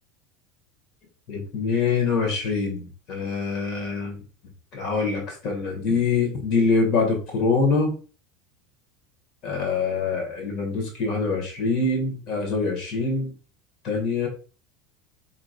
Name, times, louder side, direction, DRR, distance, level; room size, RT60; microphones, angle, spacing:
voice 1, 1.3-4.2 4.7-7.9 9.4-13.3 13.8-14.3, left 4 dB, 45° left, 1 dB, 2.1 m, -24 dB
5.1 x 3.7 x 2.6 m, 0.36 s
figure-of-eight pair, 75°, 0 cm